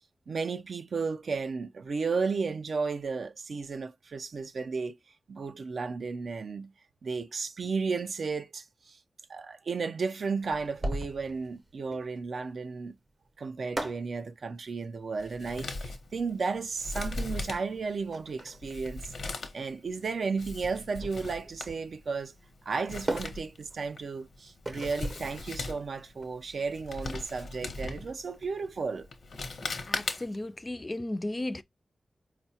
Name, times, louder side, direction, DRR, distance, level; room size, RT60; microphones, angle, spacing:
voice 1, 0.3-5.0 5.3-6.7 7.0-9.0 9.3-13.0 13.4-22.3 22.7-29.1, right 4 dB, 75° right, 0.4 m, -34 dB
sound 1, 10.4-28.7, right 1 dB, 35° right, 0.7 m, -41 dB
Male speech man speaking, 15.2-30.5, left 3 dB, 85° left, 0.7 m, -40 dB
voice 2, 29.9-31.6, left 1 dB, 25° left, 0.3 m, -35 dB
4.6 x 2.1 x 2.7 m
wide cardioid pair, 140°, 0 cm